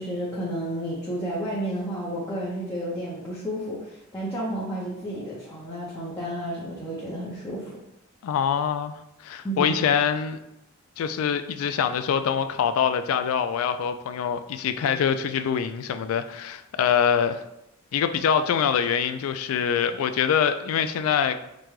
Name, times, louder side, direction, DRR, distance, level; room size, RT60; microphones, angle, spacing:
voice 1, 0.0-7.7 9.4-9.9, right 1 dB, 15° left, 0.7 m, -31 dB
voice 2, 8.2-8.9 9.2-10.4 11.0-17.4 17.9-21.4, left 7 dB, 80° left, 0.3 m, -24 dB
5.1 x 2.2 x 3.1 m
head